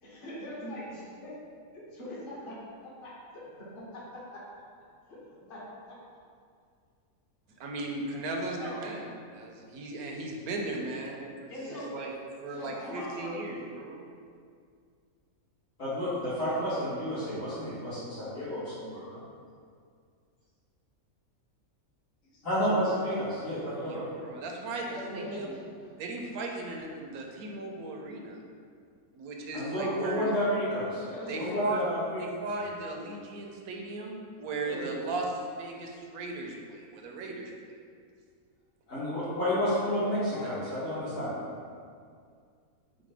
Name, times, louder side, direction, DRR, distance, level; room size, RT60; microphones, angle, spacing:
voice 1, 0.0-1.3 1.7-2.6 3.0-3.4 4.3-4.4 5.1-5.6 8.6-8.8 11.5-11.9 12.5-13.4 22.3-22.4 24.8-25.5 31.0-31.7 34.6-34.9 39.5-40.8, left 1 dB, 40° left, -7 dB, 1.1 m, -41 dB
voice 2, 7.6-11.3 11.7-12.1 12.4-14.1 23.8-25.5 26.0-28.4 29.1-30.3 31.3-31.8 32.2-37.5 40.4-40.5, right 2 dB, 80° right, 1 dB, 1.1 m, -36 dB
voice 3, 15.8-19.2 22.4-24.1 29.5-31.0 31.4-32.2 38.9-41.4, equal, 60° left, -16 dB, 1.9 m, -30 dB
5.0 x 2.1 x 4.7 m, 2.2 s
omnidirectional pair, 1.5 m